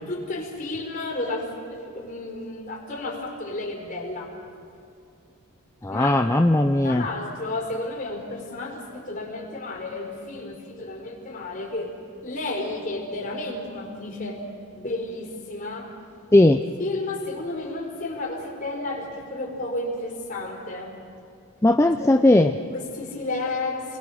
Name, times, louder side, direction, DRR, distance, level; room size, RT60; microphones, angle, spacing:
voice 1, 0.1-4.3 5.9-6.1 6.8-14.4 14.7-15.9 16.8-21.0 22.0-22.1 22.7-24.0, left 2 dB, 40° left, 0 dB, 4.4 m, -32 dB
voice 2, 5.8-7.0 16.3-16.6 21.6-22.5, left 1 dB, 15° left, 6 dB, 0.5 m, -17 dB
28.5 x 21.0 x 6.4 m, 2.4 s
head